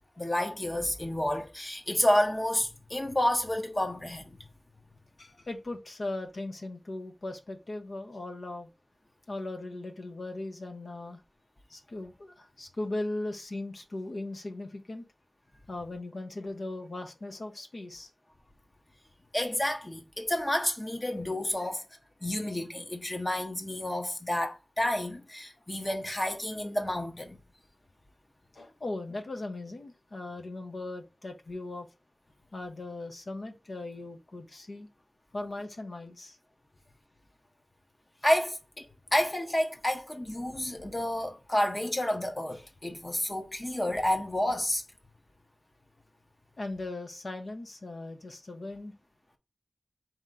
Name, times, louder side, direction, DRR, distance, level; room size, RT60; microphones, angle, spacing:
voice 1, 0.2-4.4 19.3-21.8 22.2-27.4 38.2-44.8, left 1 dB, 25° left, 0.8 m, -30 dB
voice 2, 5.2-8.7 9.3-11.2 11.7-15.0 15.7-18.1 28.5-31.9 32.5-34.9 35.3-36.4 46.6-48.9, left 2 dB, 65° left, 0.9 m, -38 dB
4.3 x 3.0 x 3.8 m
wide cardioid pair, 85°, 0 cm